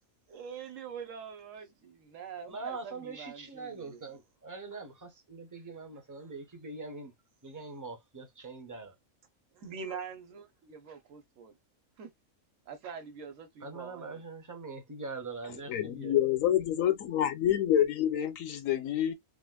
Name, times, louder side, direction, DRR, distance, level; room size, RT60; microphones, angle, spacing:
voice 1, 0.3-4.0 9.5-11.6 12.0-12.1 12.7-14.1, right 6 dB, 65° right, 1.2 m, -44 dB
voice 2, 2.5-7.1 7.4-8.9 13.6-16.1, right 3 dB, 20° right, 0.5 m, -43 dB
voice 3, 15.7-19.1, left 11 dB, 70° left, 0.9 m, -27 dB
3.4 x 2.4 x 2.2 m
omnidirectional pair, 1.5 m